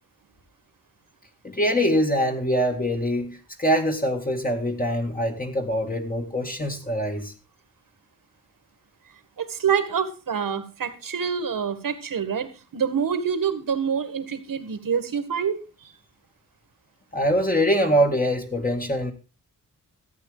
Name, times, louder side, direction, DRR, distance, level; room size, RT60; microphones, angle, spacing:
voice 1, 1.4-7.3 17.1-19.1, equal, 25° left, 2 dB, 1.9 m, -23 dB
voice 2, 9.4-15.9, right 7 dB, 80° right, 10 dB, 1.9 m, -26 dB
14.5 x 8.5 x 5.0 m, 0.32 s
wide cardioid pair, 100°, 33 cm